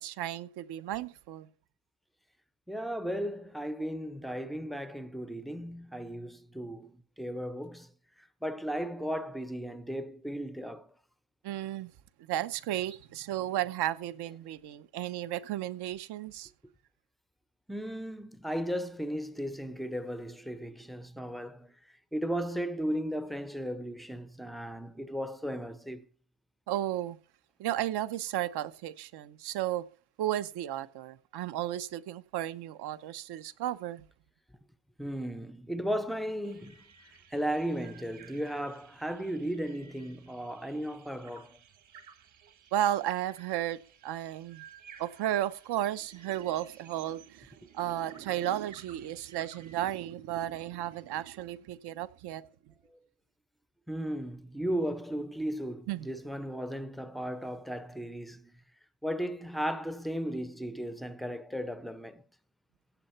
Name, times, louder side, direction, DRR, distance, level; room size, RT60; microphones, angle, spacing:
voice 1, 0.0-1.5 11.4-11.9 12.3-16.5 26.7-27.2 27.6-29.8 30.2-34.0 42.7-44.6 45.0-52.4 55.9-56.1, right 12 dB, 70° right, 0.9 m, -34 dB
voice 2, 2.7-7.9 8.2-10.9 17.7-21.7 22.1-26.1 35.0-36.8 37.3-41.6 53.9-58.5 59.0-62.2, equal, ahead, 0.4 m, -35 dB
sound 1, 36.4-50.1, right 7 dB, 45° right, 1.5 m, -56 dB
15.0 x 8.0 x 4.3 m
cardioid pair, 160°, 41 cm